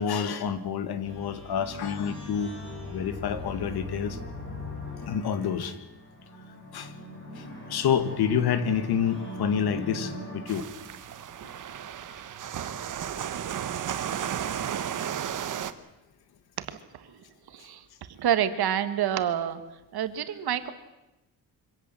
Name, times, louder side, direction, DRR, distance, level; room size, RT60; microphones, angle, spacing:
voice 1, 0.0-2.5 2.9-4.2 5.0-5.8 6.7-6.9 7.3-10.7 12.1-12.2, left 7 dB, 70° left, 11 dB, 2.0 m, -28 dB
sound 1, 1.0-11.1, left 2 dB, 30° left, 7.0 m, -40 dB
sound 2, 10.5-15.7, right 9 dB, 50° right, 1.3 m, -33 dB
voice 2, 18.2-19.6 19.9-20.7, right 10 dB, 70° right, 11 dB, 1.8 m, -27 dB
25.0 x 17.5 x 7.7 m, 0.98 s
cardioid pair, 145°, 39 cm